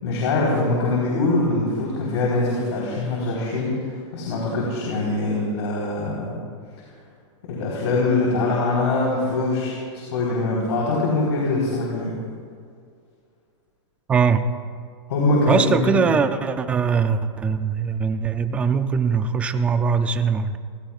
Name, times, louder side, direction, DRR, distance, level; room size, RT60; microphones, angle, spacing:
voice 1, 0.0-6.4 7.5-12.2 15.1-16.0, left 2 dB, 60° left, -4 dB, 4.0 m, -23 dB
voice 2, 14.1-14.4 15.5-20.6, right 6 dB, 10° right, 10 dB, 0.3 m, -21 dB
30.0 x 16.0 x 2.4 m, 2.2 s
supercardioid pair, 165°, 16 cm